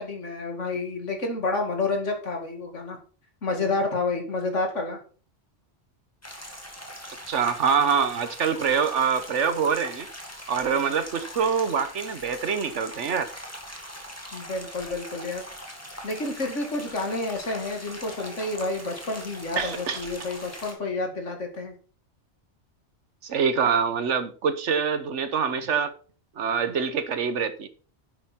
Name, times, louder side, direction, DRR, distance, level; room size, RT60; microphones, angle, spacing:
voice 1, 0.0-3.0 3.4-5.0 14.3-15.4 16.0-21.7, left 3 dB, 90° left, 2.7 m, -29 dB
sound 1, 6.2-20.7, equal, 10° left, 2.3 m, -41 dB
voice 2, 7.3-10.1 10.5-13.3 19.6-20.0 23.2-25.9 26.4-27.7, right 6 dB, 80° right, 1.4 m, -25 dB
10.0 x 8.1 x 4.4 m
omnidirectional pair, 1.2 m